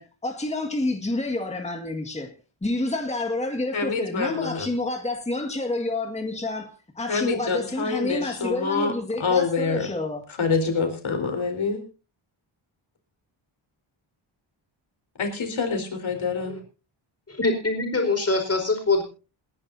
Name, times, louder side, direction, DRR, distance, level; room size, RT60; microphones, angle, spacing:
voice 1, 0.0-2.3 2.6-10.2, left 2 dB, 15° left, 1.9 m, -29 dB
voice 2, 3.7-4.7 7.1-8.9 9.2-9.9 10.4-11.8 15.2-16.6, left 4 dB, 70° left, 4.3 m, -26 dB
voice 3, 17.3-19.0, left 3 dB, 30° left, 4.7 m, -23 dB
29.0 x 10.5 x 2.7 m
wide cardioid pair, 165°, 49 cm